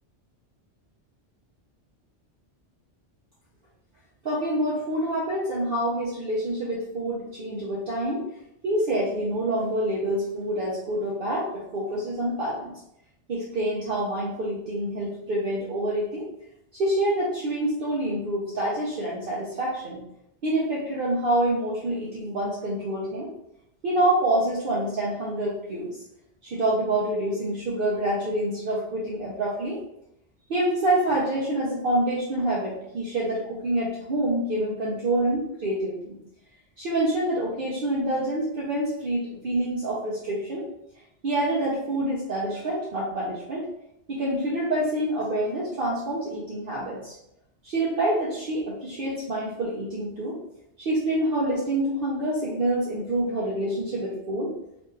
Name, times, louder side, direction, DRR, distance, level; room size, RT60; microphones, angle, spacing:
voice 1, 4.2-8.2 8.6-12.7 13.3-16.3 16.7-20.0 20.4-23.3 23.8-26.0 26.4-29.8 30.5-36.2 36.8-40.6 41.2-43.7 44.1-47.1 47.6-50.4 50.8-54.5, right 1 dB, 60° right, -5 dB, 0.7 m, -27 dB
2.9 x 2.2 x 3.2 m, 0.81 s
omnidirectional pair, 1.1 m